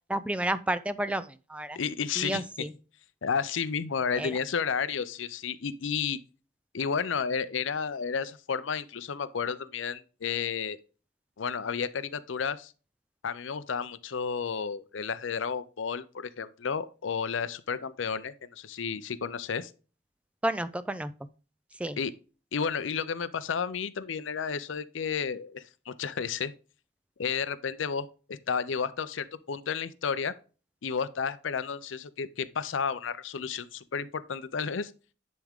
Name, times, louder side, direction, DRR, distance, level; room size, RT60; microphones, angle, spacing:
voice 1, 0.1-1.8 2.2-2.7 4.2-4.4 20.4-21.1 21.8-22.0, right 1 dB, 5° right, 0.3 m, -31 dB
voice 2, 1.8-2.7 3.2-6.2 6.7-10.8 11.4-12.7 13.2-19.7 22.0-22.1 22.5-26.5 27.2-30.3 30.8-34.9, left 6 dB, 75° left, 0.5 m, -32 dB
10.5 x 3.6 x 3.6 m
head